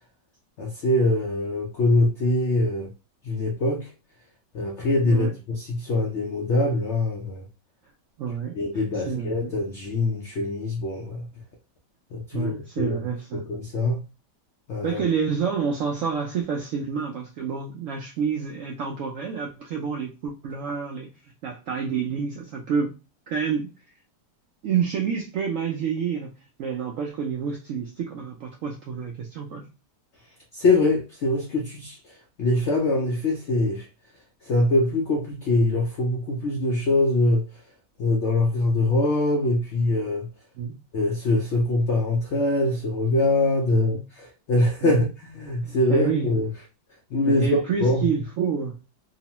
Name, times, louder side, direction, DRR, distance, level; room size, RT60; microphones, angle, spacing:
voice 1, 0.6-2.9 3.2-3.9 4.5-7.4 8.5-11.3 12.1-13.0 13.3-14.0 14.7-15.0 30.5-32.0 32.4-33.9 34.4-37.4 38.0-40.3 40.9-46.5 47.1-48.1, left 2 dB, 85° left, 0.6 m, -23 dB
voice 2, 8.2-9.6 12.3-13.4 14.8-21.1 21.4-22.9 23.3-23.7 24.6-26.3 26.6-29.7 40.6-40.8 43.7-44.0 44.8-45.0 45.6-46.3 47.2-48.8, right 6 dB, 80° right, 0.7 m, -28 dB
3.0 x 2.0 x 2.8 m
omnidirectional pair, 1.9 m